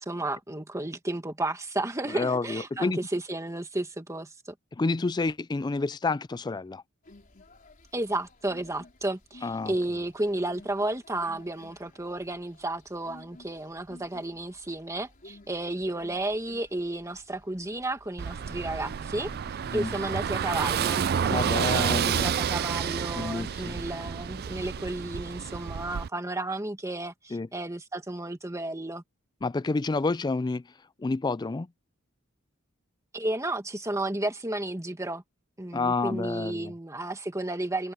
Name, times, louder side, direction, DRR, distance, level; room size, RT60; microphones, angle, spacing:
voice 1, 0.0-4.3 7.9-19.3 19.7-29.0 33.1-35.2 35.6-37.9, right 2 dB, 15° right, 1.8 m, -32 dB
voice 2, 2.1-3.0 4.8-6.8 9.4-9.7 19.7-19.9 21.3-22.3 23.1-23.8 27.3-27.5 29.4-30.6 31.0-31.7 35.7-36.7, left 3 dB, 20° left, 0.4 m, -29 dB
sound 1, 7.0-24.8, left 2 dB, 40° left, 4.0 m, -55 dB
Car passing by / Engine, 18.2-26.1, right 7 dB, 50° right, 0.4 m, -29 dB
head